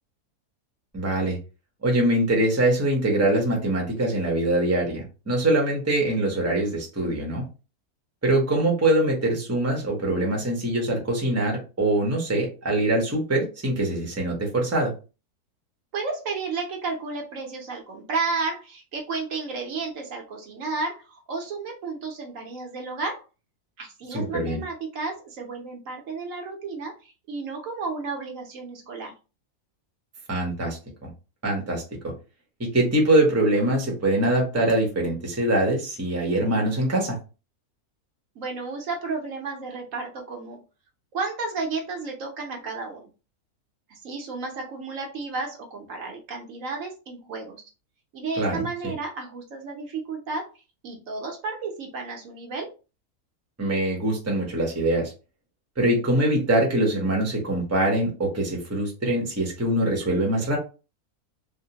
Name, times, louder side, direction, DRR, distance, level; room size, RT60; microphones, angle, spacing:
voice 1, 0.9-1.4 1.8-7.5 8.2-14.9 24.1-24.6 30.3-31.1 31.4-31.8 32.6-37.2 48.4-48.9 53.6-55.1 55.8-60.6, right 1 dB, 15° right, 0 dB, 0.7 m, -23 dB
voice 2, 15.9-23.2 23.8-29.1 38.4-40.6 41.1-43.1 43.9-47.6 48.1-50.5 50.8-52.7, right 4 dB, 65° right, 2 dB, 1.1 m, -32 dB
3.4 x 2.1 x 2.8 m, 0.31 s
omnidirectional pair, 1.6 m